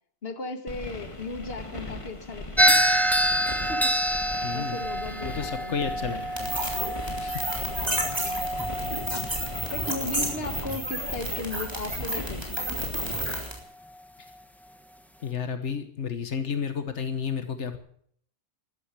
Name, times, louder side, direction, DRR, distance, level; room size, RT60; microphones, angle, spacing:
voice 1, 0.2-2.8 3.7-4.0 4.5-6.1 8.0-8.5 9.7-13.0, left 3 dB, 60° left, 8 dB, 1.8 m, -36 dB
sound 1, 0.7-13.5, left 1 dB, 30° left, 1.7 m, -39 dB
sound 2, 2.6-10.9, right 1 dB, ahead, 1.0 m, -27 dB
voice 2, 4.4-4.9 5.2-6.5 7.2-7.5 14.2-14.3 15.2-17.8, left 6 dB, 85° left, 8 dB, 1.5 m, -32 dB
sound 3, 6.4-13.6, right 1 dB, 20° right, 3.7 m, -31 dB
13.5 x 12.0 x 8.3 m, 0.63 s
omnidirectional pair, 1.2 m